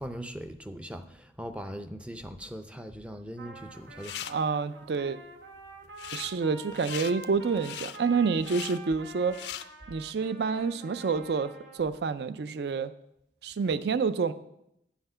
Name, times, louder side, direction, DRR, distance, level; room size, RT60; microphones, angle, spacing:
voice 1, 0.0-4.3, equal, 5° right, 8 dB, 0.4 m, -40 dB
Trumpet, 3.4-11.9, right 3 dB, 90° right, 1.2 m, -47 dB
sound 1, 3.7-4.3 5.8-6.3 6.7-9.6, left 11 dB, 70° left, 0.4 m, -40 dB
voice 2, 4.3-5.2 6.1-9.4 9.9-12.9 13.4-14.3, right 5 dB, 65° right, 14 dB, 0.4 m, -28 dB
9.0 x 5.8 x 5.5 m, 0.78 s
head